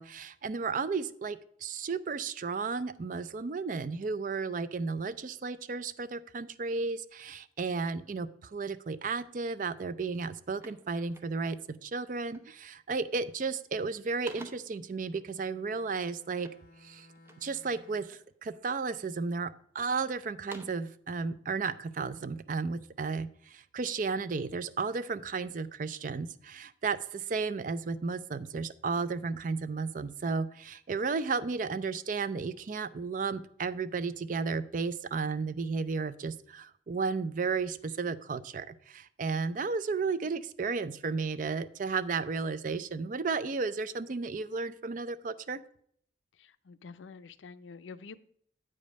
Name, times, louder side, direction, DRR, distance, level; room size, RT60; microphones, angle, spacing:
voice 1, 0.0-16.5 16.8-17.1 17.4-45.6, right 4 dB, 45° right, 15 dB, 0.4 m, -33 dB
sound 1, 9.7-9.8 10.1-11.7 12.3-12.6 13.0-13.5 13.8-14.8 16.4-17.6 18.1-18.7 19.2-19.9 20.3-20.9, right 1 dB, 15° right, 0.8 m, -52 dB
Bowed string instrument, 14.9-18.3, left 2 dB, 50° left, 0.8 m, -60 dB
voice 2, 46.3-48.2, left 5 dB, 85° left, 15 dB, 0.5 m, -48 dB
8.5 x 5.1 x 5.2 m, 0.64 s
head